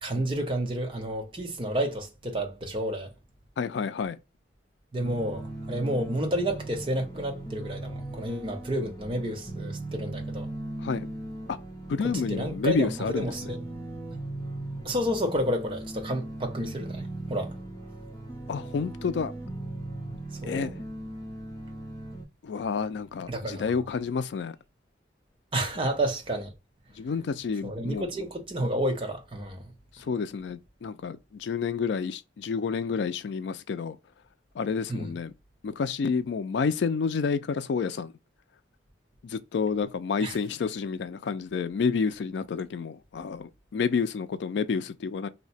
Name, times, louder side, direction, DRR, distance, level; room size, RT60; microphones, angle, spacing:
voice 1, 0.0-3.1 4.9-10.5 12.0-13.6 14.8-17.6 20.4-20.7 23.3-23.6 25.5-26.5 27.6-29.6 34.9-35.1 40.2-40.3, right 1 dB, 30° right, 0.7 m, -30 dB
voice 2, 3.6-4.2 10.8-11.1 11.5-11.6 11.9-13.5 18.5-19.3 20.4-20.8 22.4-24.6 26.9-28.1 29.9-34.0 34.5-35.3 35.6-38.1 39.2-45.3, left 5 dB, 70° left, 0.3 m, -29 dB
sound 1, 5.0-22.2, right 1 dB, 15° left, 0.8 m, -38 dB
2.8 x 2.1 x 4.0 m
head